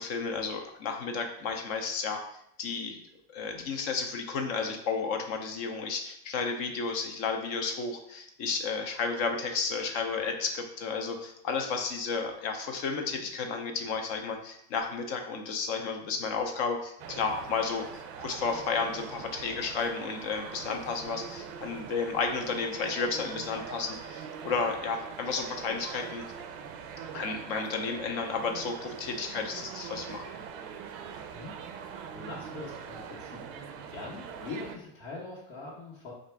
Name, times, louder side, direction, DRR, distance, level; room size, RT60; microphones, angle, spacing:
voice 1, 0.0-2.2 2.6-3.0 3.3-17.9 18.2-26.2 27.1-30.2, left 5 dB, 45° left, 4 dB, 0.6 m, -32 dB
sound 1, 17.0-34.8, right 7 dB, 50° right, 0.4 m, -42 dB
voice 2, 32.1-33.4 33.9-36.1, left 3 dB, 85° left, -9 dB, 1.4 m, -42 dB
3.5 x 2.6 x 4.4 m, 0.73 s
supercardioid pair, 160°, 38 cm